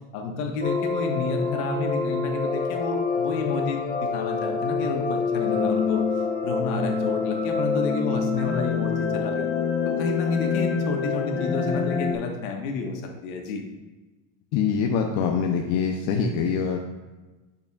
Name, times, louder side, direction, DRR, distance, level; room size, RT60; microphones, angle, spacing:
voice 1, 0.1-6.0 6.4-9.5 9.8-13.6, left 3 dB, 80° left, 2 dB, 1.5 m, -30 dB
sound 1, 0.6-12.2, left 5 dB, 20° left, 0.8 m, -26 dB
voice 2, 14.5-16.8, left 6 dB, 60° left, 2 dB, 0.8 m, -24 dB
8.2 x 6.8 x 2.4 m, 1.2 s
supercardioid pair, 130°, 42 cm